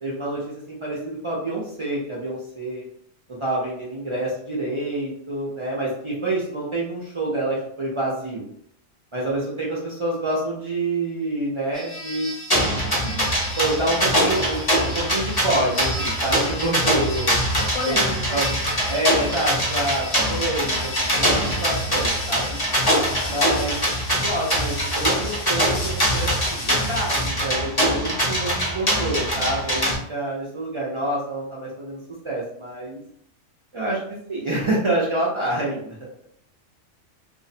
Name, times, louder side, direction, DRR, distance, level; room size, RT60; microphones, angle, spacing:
voice 1, 0.0-2.8 3.3-8.5 9.1-12.3 13.6-14.6 14.8-17.4 17.9-18.0 18.3-18.5 18.9-22.6 23.2-32.0 32.2-33.0 33.7-36.0, right 1 dB, 50° right, -5 dB, 0.3 m, -27 dB
sound 1, 11.7-27.3, left 1 dB, 90° left, 1.3 m, -35 dB
sound 2, 12.5-29.9, equal, 35° left, 0.4 m, -23 dB
voice 2, 12.8-13.3 17.6-18.4, left 2 dB, 50° left, -2 dB, 0.8 m, -33 dB
2.6 x 2.0 x 2.6 m, 0.67 s
omnidirectional pair, 1.3 m